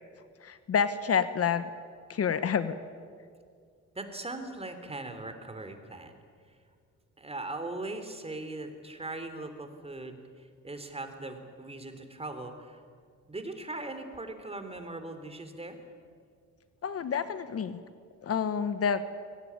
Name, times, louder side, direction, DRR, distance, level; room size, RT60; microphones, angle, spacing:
voice 1, 0.4-1.7 2.1-2.7 16.8-17.8 18.2-19.0, left 7 dB, 50° left, 12 dB, 1.2 m, -28 dB
voice 2, 3.9-6.2 7.2-12.8 13.3-15.8, right 2 dB, 20° right, 8 dB, 3.5 m, -40 dB
23.0 x 18.5 x 9.7 m, 2.1 s
cardioid pair, 90°, 30 cm